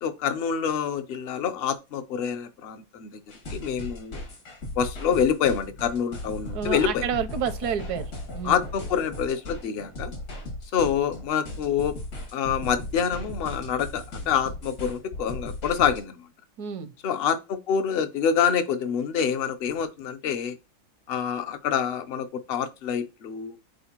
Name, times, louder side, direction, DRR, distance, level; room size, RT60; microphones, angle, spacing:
voice 1, 0.0-3.2 3.5-4.2 4.8-7.1 8.4-10.1 10.7-12.0 12.3-16.2 17.0-20.6 21.1-23.6, left 7 dB, 55° left, 0.7 m, -26 dB
sound 1, 3.3-16.0, left 1 dB, 70° left, 2.4 m, -37 dB
voice 2, 6.5-8.6 16.6-16.9, right 7 dB, 85° right, 1.2 m, -30 dB
7.8 x 4.3 x 2.9 m
omnidirectional pair, 1.6 m